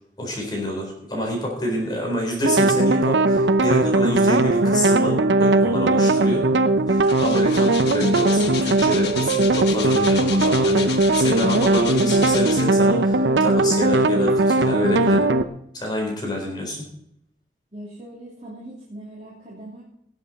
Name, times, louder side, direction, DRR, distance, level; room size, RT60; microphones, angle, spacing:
voice 1, 0.2-6.5 6.9-15.3 15.7-16.9, left 1 dB, 25° left, -1 dB, 4.1 m, -27 dB
sound 1, 2.4-15.4, right 2 dB, 85° right, 0.8 m, -19 dB
sound 2, 6.4-6.5 6.7-13.0 13.6-13.7, left 7 dB, 70° left, 1.3 m, -33 dB
voice 2, 17.7-19.8, right 1 dB, 35° right, -6 dB, 3.1 m, -40 dB
19.0 x 7.9 x 4.2 m, 0.74 s
head